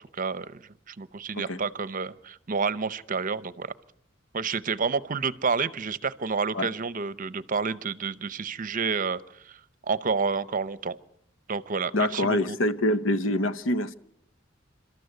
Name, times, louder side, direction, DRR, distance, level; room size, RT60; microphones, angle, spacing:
voice 1, 0.1-3.7 4.3-11.0 11.5-12.6, right 5 dB, 45° right, 0.7 m, -29 dB
voice 2, 11.9-13.9, left 1 dB, 85° left, 0.9 m, -25 dB
29.5 x 13.0 x 8.1 m
head